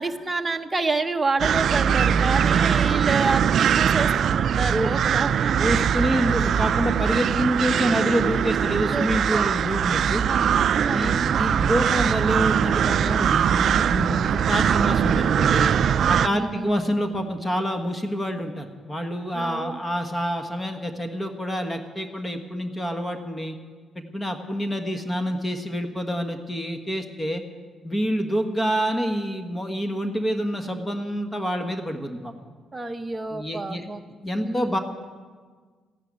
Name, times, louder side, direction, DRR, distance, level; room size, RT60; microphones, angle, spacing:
voice 1, 0.0-5.6 8.8-9.5 10.2-11.6 16.0-16.7 19.3-19.8 32.7-34.0 34.4-34.8, right 3 dB, 20° right, 5 dB, 0.9 m, -29 dB
sound 1, 1.4-16.3, right 8 dB, 60° right, 0.4 m, -21 dB
voice 2, 5.6-10.2 10.9-15.8 16.1-23.6 23.9-27.4 27.8-32.3 33.3-33.9 34.2-34.8, equal, 15° left, 6 dB, 1.4 m, -27 dB
14.5 x 10.5 x 9.6 m, 1.5 s
cardioid pair, 90°, 0 cm